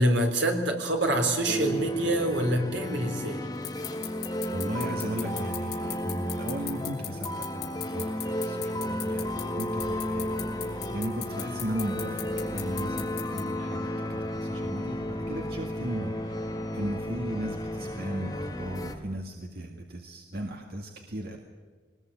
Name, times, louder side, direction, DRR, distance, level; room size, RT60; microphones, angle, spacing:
voice 1, 0.0-3.5, right 1 dB, 75° right, 4 dB, 3.8 m, -26 dB
sound 1, 1.5-19.0, equal, 20° left, 1.5 m, -33 dB
sound 2, 3.6-13.4, left 15 dB, 60° left, 3.6 m, -35 dB
voice 2, 4.5-13.9 14.2-21.4, right 1 dB, 55° right, 2 dB, 2.0 m, -36 dB
Engine, 9.1-19.0, equal, 25° right, 7.8 m, -47 dB
22.5 x 20.0 x 9.1 m, 1.5 s
head